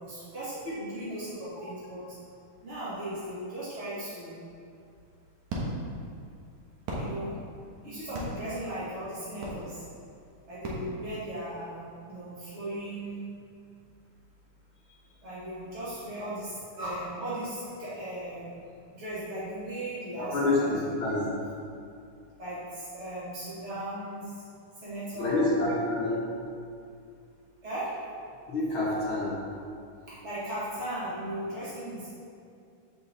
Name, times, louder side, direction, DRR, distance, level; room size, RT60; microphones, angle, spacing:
voice 1, 0.0-2.0 2.6-4.4 7.0-7.3 7.8-9.8 10.5-13.2 15.2-18.5 18.9-20.7 22.4-24.3 24.8-25.5 27.6-27.9 30.1-32.1, right 1 dB, 40° right, -11 dB, 1.0 m, -37 dB
sound 1, 4.8-11.7, right 1 dB, 65° right, 2.4 m, -39 dB
voice 2, 20.2-21.3 25.1-26.3 28.5-29.4, left 2 dB, 70° left, -7 dB, 1.2 m, -27 dB
6.3 x 5.4 x 6.9 m, 2.4 s
omnidirectional pair, 4.4 m